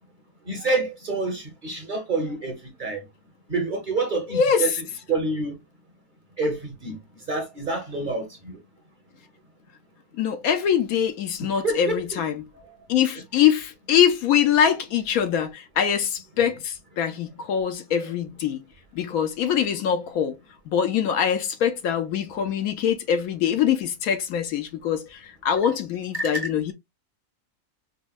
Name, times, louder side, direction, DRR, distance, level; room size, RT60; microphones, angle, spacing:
voice 1, 0.4-3.0 3.5-4.7 5.1-5.5 6.4-7.0 7.3-8.6 11.4-12.2 26.1-26.3, right 3 dB, 40° right, 0.9 m, -27 dB
voice 2, 4.3-4.7 10.2-12.4 12.9-18.6 18.9-20.4 20.7-26.7, left 8 dB, 70° left, 1.0 m, -23 dB
5.3 x 2.1 x 2.3 m
omnidirectional pair, 1.6 m